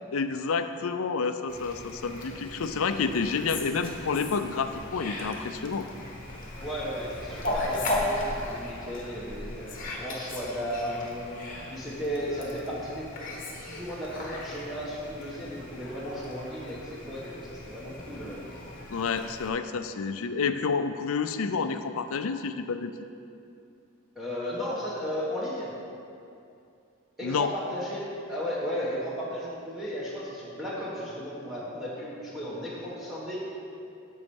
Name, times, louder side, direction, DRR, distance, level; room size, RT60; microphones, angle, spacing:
voice 1, 0.1-5.9 18.9-23.1 27.2-27.5, left 5 dB, 75° left, 9 dB, 0.5 m, -29 dB
Fowl, 1.5-19.5, left 1 dB, 40° left, 1.2 m, -37 dB
voice 2, 6.6-11.1 11.7-13.1 13.7-18.4 24.1-25.7 27.2-28.0 28.3-33.4, equal, ahead, -9 dB, 1.4 m, -35 dB
8.1 x 5.5 x 7.1 m, 2.6 s
head